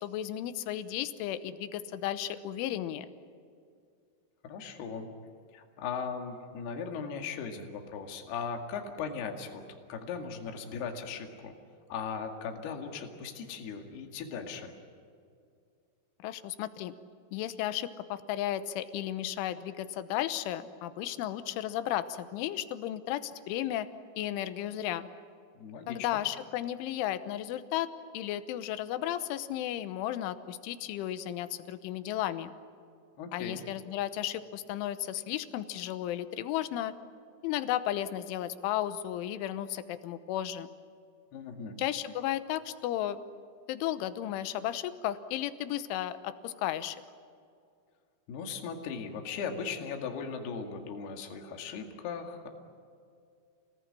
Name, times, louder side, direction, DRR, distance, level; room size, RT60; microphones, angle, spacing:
voice 1, 0.0-3.1 16.2-16.9 17.3-23.9 24.2-25.1 25.9-27.9 28.1-32.5 33.3-36.9 37.4-40.7 41.8-43.2 43.7-47.0, left 12 dB, 85° left, 12 dB, 3.4 m, -34 dB
voice 2, 4.4-5.1 5.5-9.6 9.9-11.5 11.9-14.7 25.6-26.1 33.2-33.6 41.3-41.8 48.3-52.5, left 6 dB, 60° left, 4 dB, 3.9 m, -38 dB
29.0 x 19.0 x 10.0 m, 2.4 s
omnidirectional pair, 5.6 m